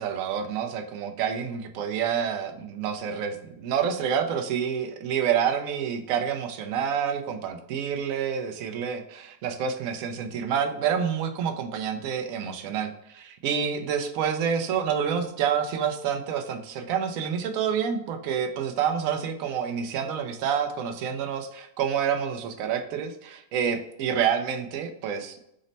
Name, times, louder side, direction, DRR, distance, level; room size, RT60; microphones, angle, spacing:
voice 1, 0.0-25.4, right 7 dB, 70° right, 6 dB, 0.9 m, -28 dB
5.1 x 2.1 x 3.9 m, 0.79 s
omnidirectional pair, 1.7 m